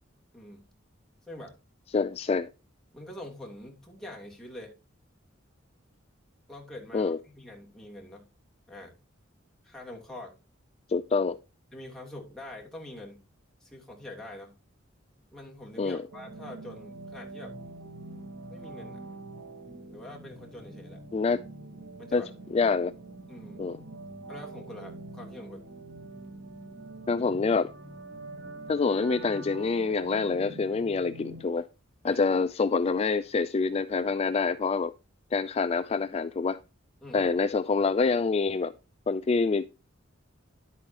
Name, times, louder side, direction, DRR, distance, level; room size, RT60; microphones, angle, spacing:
voice 1, 0.3-0.7 1.3-1.5 2.9-4.7 6.5-8.2 8.7-8.9 9.6-10.3 11.7-13.2 13.6-14.5 15.3-17.6 18.5-19.0 19.9-21.0 22.0-22.3 23.3-23.7 24.3-25.6 32.0-32.4 37.0-37.3, left 1 dB, 5° left, 3.1 m, -44 dB
voice 2, 1.9-2.5 6.9-7.2 10.9-11.4 15.8-16.0 21.1-21.4 22.1-22.2 22.5-22.9 23.6-23.8 27.1-27.7 28.7-31.7 32.0-34.9 35.3-36.6 37.1-38.7 39.1-39.7, left 4 dB, 30° left, 0.3 m, -26 dB
sound 1, 16.1-31.4, right 2 dB, 60° right, 2.4 m, -44 dB
10.5 x 8.4 x 2.9 m
head